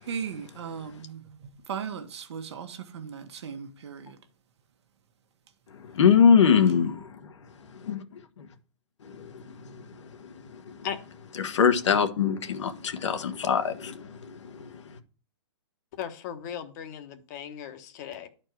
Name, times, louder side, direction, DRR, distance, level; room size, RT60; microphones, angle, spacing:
voice 1, 0.0-4.2, right 7 dB, 65° right, 1.2 m, -37 dB
voice 2, 5.9-7.2 7.8-8.0 8.4-8.5 9.0-9.8 10.7-10.8 11.4-14.4, left 7 dB, 80° left, 1.3 m, -23 dB
voice 3, 15.9-18.3, left 9 dB, 35° left, 1.1 m, -37 dB
11.0 x 4.5 x 4.6 m
hypercardioid pair, 160°, 15 cm